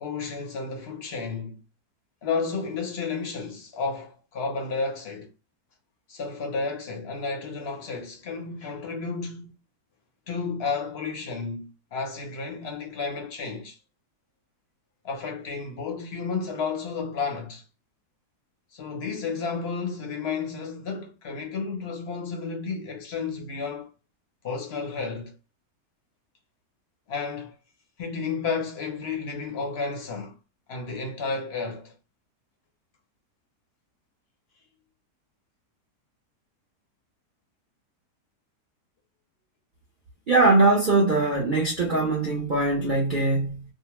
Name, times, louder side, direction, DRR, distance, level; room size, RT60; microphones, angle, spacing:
voice 1, 0.0-1.6 2.2-5.3 6.1-9.5 10.3-13.8 15.0-17.6 18.7-23.9 24.4-25.4 27.1-27.5 28.0-30.4 30.7-31.9, left 4 dB, 55° left, 0.7 m, -32 dB
voice 2, 40.3-43.6, right 2 dB, 60° right, 0.5 m, -21 dB
2.8 x 2.0 x 2.9 m
omnidirectional pair, 1.8 m